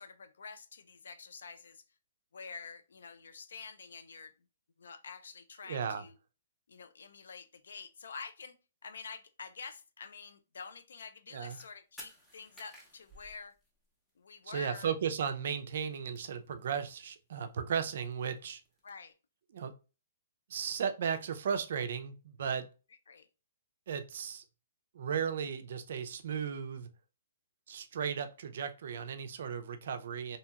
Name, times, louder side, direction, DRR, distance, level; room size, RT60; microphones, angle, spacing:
voice 1, 0.0-1.8 2.3-4.3 4.8-6.2 6.7-8.5 8.8-13.6 14.2-14.9 18.8-19.1 23.1-23.3, left 5 dB, 80° left, 0.4 m, -48 dB
voice 2, 5.7-6.0 11.3-11.6 14.5-18.6 19.5-19.7 20.5-22.7 23.9-24.4 24.9-26.9 27.7-30.4, right 7 dB, 60° right, 0.4 m, -35 dB
sound 1, 11.5-11.7 12.0-14.1 14.4-14.5 14.7-14.8 15.0-15.6 15.8-17.1 17.4-18.9, left 1 dB, 5° left, 0.7 m, -54 dB
2.8 x 2.7 x 2.2 m
hypercardioid pair, 155°, 0 cm